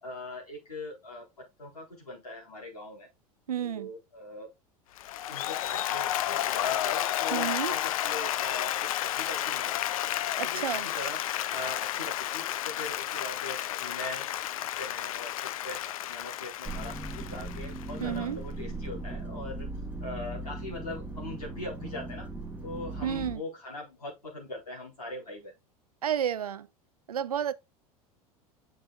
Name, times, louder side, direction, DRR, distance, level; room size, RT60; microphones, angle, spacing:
voice 1, 0.0-1.3 1.6-3.1 3.6-4.5 5.3-9.8 10.3-11.2 11.5-14.2 14.8-15.8 16.1-19.7 20.0-22.3 22.6-25.5, left 2 dB, 85° left, 4.2 m, -41 dB
voice 2, 3.5-3.9 7.3-7.7 10.4-10.9 18.0-18.4 23.0-23.4 26.0-26.7 27.1-27.5, right 9 dB, 75° right, 0.7 m, -31 dB
Applause, 5.0-18.2, left 13 dB, 65° left, 0.5 m, -32 dB
sound 1, 16.7-23.4, right 2 dB, 10° right, 3.1 m, -38 dB
8.7 x 6.7 x 2.4 m
figure-of-eight pair, 80°, 19 cm